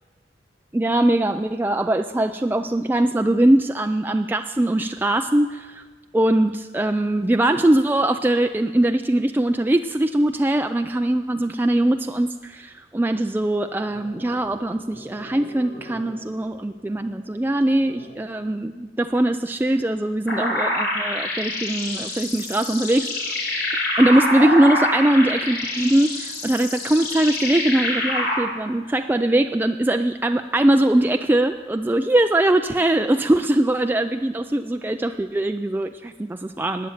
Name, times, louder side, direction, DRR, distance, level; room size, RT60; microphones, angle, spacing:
voice 1, 0.7-5.8 6.1-23.3 24.0-36.9, right 1 dB, 10° right, 6 dB, 0.3 m, -21 dB
sound 1, 13.4-18.4, equal, 90° left, 5.7 m, -45 dB
sound 2, 20.3-28.4, left 1 dB, 75° left, 4.5 m, -26 dB
12.5 x 9.2 x 9.0 m, 1.4 s
head